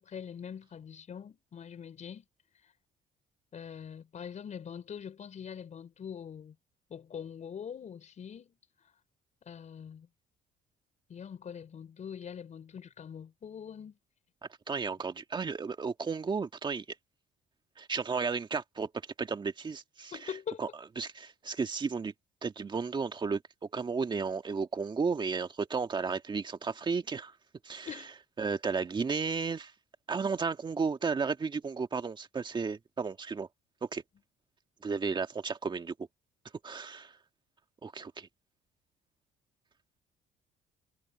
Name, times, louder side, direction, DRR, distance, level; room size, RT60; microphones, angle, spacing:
voice 1, 0.0-2.2 2.6-2.7 3.5-6.5 6.9-8.6 9.4-10.1 11.1-14.0 20.1-20.8 27.8-28.1, left 8 dB, 45° left, 5.0 m, -43 dB
voice 2, 14.7-16.9 17.8-18.9 19.2-20.3 20.6-20.7 21.0-22.1 22.4-23.4 23.7-27.3 27.6-27.9 28.4-29.7 30.1-33.5 33.8-34.0 34.8-36.1 36.6-37.2 37.8-38.3, right 5 dB, 25° right, 1.8 m, -33 dB
cardioid pair, 110°, 17 cm